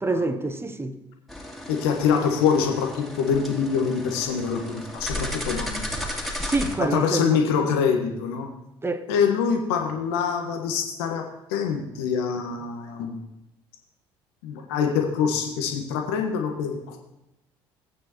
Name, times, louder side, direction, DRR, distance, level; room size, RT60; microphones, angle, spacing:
voice 1, 0.0-1.0 6.4-7.7 8.8-9.1, right 2 dB, 15° right, 1.2 m, -27 dB
sound 1, 1.3-6.8, left 1 dB, ahead, 3.0 m, -34 dB
voice 2, 1.7-5.9 6.9-8.5 9.1-11.2 11.5-13.2 14.4-17.0, left 6 dB, 70° left, 1.5 m, -25 dB
18.0 x 8.8 x 3.0 m
figure-of-eight pair, 55°, 14 cm